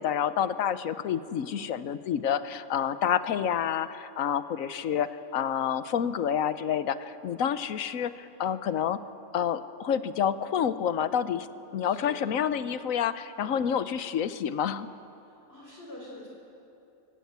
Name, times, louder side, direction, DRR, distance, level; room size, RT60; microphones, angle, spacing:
voice 1, 0.0-9.0 9.3-11.5 11.7-14.9, left 8 dB, 80° left, 13 dB, 1.2 m, -28 dB
voice 2, 1.4-1.7 11.8-12.3 15.2-16.3, left 1 dB, 45° left, -3 dB, 4.1 m, -47 dB
25.0 x 17.0 x 8.1 m, 2.8 s
omnidirectional pair, 1.4 m